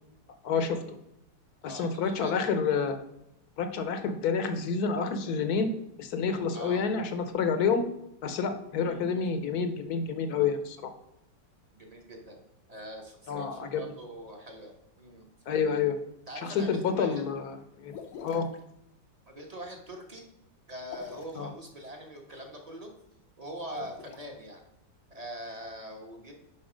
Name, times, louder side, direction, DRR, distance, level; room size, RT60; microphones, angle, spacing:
voice 1, 0.4-0.8 1.6-3.0 3.6-5.7 6.0-7.8 8.2-10.8 13.3-13.8 15.5-16.0 16.4-17.9 18.2-18.5 21.4-21.5, left 5 dB, 60° left, 8 dB, 1.2 m, -28 dB
voice 2, 1.6-2.5 6.5-6.8 8.8-9.0 11.7-12.4 12.7-15.3 16.3-17.2 18.3-18.5 19.3-20.2 20.7-22.9 23.4-24.6 25.1-26.3, equal, 25° right, 2 dB, 1.1 m, -43 dB
sound 1, 17.9-18.6 20.8-21.4 23.6-24.2, left 7 dB, 85° left, 1.7 m, -45 dB
11.0 x 4.1 x 5.0 m, 0.81 s
omnidirectional pair, 2.1 m